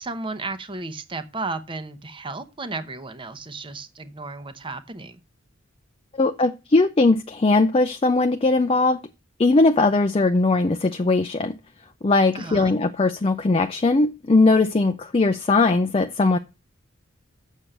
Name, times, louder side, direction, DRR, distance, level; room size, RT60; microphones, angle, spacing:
voice 1, 0.0-5.2 12.3-12.7, right 3 dB, 25° right, 0.9 m, -34 dB
voice 2, 6.2-9.0 9.4-11.5 12.0-16.4, left 3 dB, 30° left, 0.5 m, -19 dB
7.4 x 6.3 x 6.6 m
head